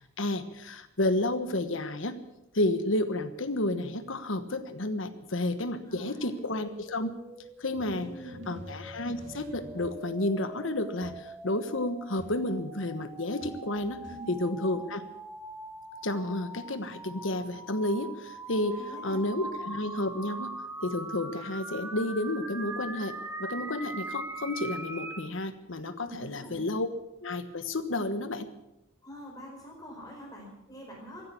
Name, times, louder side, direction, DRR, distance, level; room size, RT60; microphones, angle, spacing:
voice 1, 0.2-2.1 2.5-7.1 7.6-8.1 8.5-14.0 14.3-15.0 16.0-20.5 20.8-26.9 27.2-28.5, left 1 dB, 75° left, 10 dB, 1.3 m, -31 dB
voice 2, 5.8-6.3 7.8-8.6 14.1-14.4 18.7-19.2 26.0-26.6 29.0-31.2, equal, 20° left, -2 dB, 4.5 m, -45 dB
sound 1, 6.4-25.3, right 2 dB, 10° right, 1.5 m, -42 dB
sound 2, 7.7-10.2 11.0-11.4 12.2-12.7 13.4-14.2, left 1 dB, 65° right, 2.8 m, -49 dB
15.0 x 10.5 x 8.5 m, 0.91 s
head